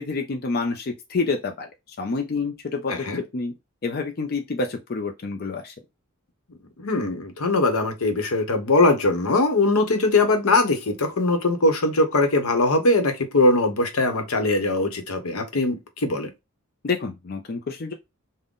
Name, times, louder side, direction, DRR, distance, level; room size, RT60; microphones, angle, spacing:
voice 1, 0.0-1.7 2.0-3.5 3.8-5.7 16.8-17.9, left 4 dB, 45° left, 0.5 m, -28 dB
voice 2, 2.9-3.2 6.8-16.3, left 2 dB, 80° left, 0.9 m, -21 dB
3.7 x 2.1 x 3.6 m
head